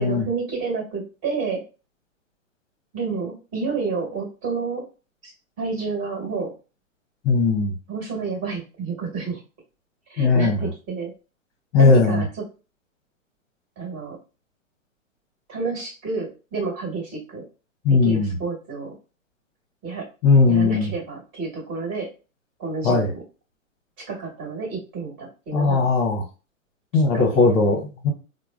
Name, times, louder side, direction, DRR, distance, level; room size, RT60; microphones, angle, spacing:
voice 1, 0.0-1.6 2.9-4.9 5.2-5.3 5.6-6.5 7.9-9.4 10.1-11.1 11.8-12.4 13.8-14.2 15.5-17.4 17.9-18.9 19.8-20.1 20.4-22.1 22.6-23.2 24.0-25.9 26.9-27.8, right 4 dB, 30° right, -2 dB, 1.7 m, -30 dB
voice 2, 7.2-7.7 10.2-10.7 11.7-12.2 17.8-18.3 20.2-20.8 22.8-23.1 25.5-26.2 26.9-27.8 28.0-28.1, left 4 dB, 25° left, 3 dB, 0.8 m, -18 dB
4.6 x 2.1 x 2.3 m, 0.33 s
figure-of-eight pair, 120°, 41 cm